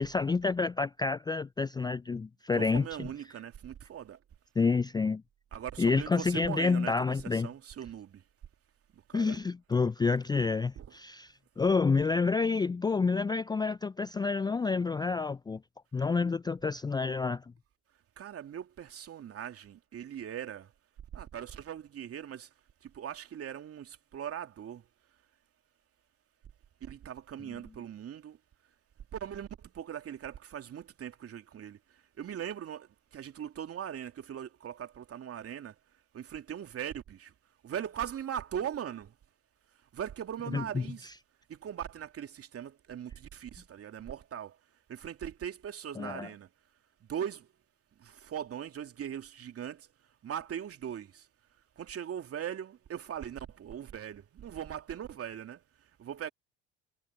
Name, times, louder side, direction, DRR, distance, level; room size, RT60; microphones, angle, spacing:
voice 1, 0.0-2.9 4.6-5.2 5.8-7.5 9.1-15.6 15.9-17.4 40.5-40.8 46.0-46.3, left 4 dB, 10° left, 0.5 m, -29 dB
voice 2, 2.5-4.2 5.5-8.2 8.9-9.4 10.8-11.0 18.2-20.7 21.1-22.5 22.8-24.8 26.8-28.4 29.1-35.7 36.1-37.3 37.6-39.1 39.9-41.1 41.5-44.6 44.9-46.5 47.1-47.5 48.0-49.9 50.2-51.3 51.8-55.6 56.0-56.3, right 9 dB, 40° right, 2.8 m, -40 dB
hypercardioid pair, 60°, 35 cm